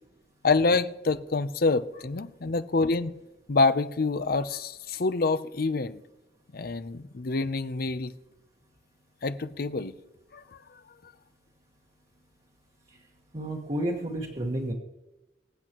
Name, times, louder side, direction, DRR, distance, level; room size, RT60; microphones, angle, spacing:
voice 1, 0.4-3.1 3.5-6.0 6.5-8.1 9.2-10.0 10.3-11.1, left 3 dB, 60° left, 0.6 m, -27 dB
voice 2, 13.3-14.7, right 1 dB, 40° right, 1.5 m, -30 dB
24.5 x 8.3 x 3.0 m
head